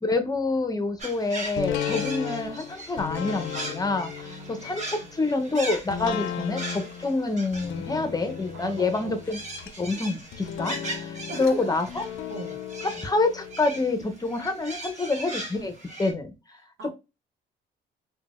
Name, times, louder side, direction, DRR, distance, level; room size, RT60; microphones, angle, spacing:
voice 1, 0.0-9.4 9.8-12.0 12.8-16.3, left 3 dB, 20° left, 0.6 m, -27 dB
sound 1, 1.0-16.1, right 1 dB, 35° right, 1.1 m, -39 dB
sound 2, 1.5-14.5 14.9-15.0, left 9 dB, 80° left, 0.4 m, -36 dB
voice 2, 4.2-5.1 5.9-6.2 8.5-9.2 11.3-12.0 12.3-12.6 16.6-16.9, right 3 dB, 85° right, 0.8 m, -41 dB
3.7 x 2.2 x 2.4 m
cardioid pair, 90°, 20 cm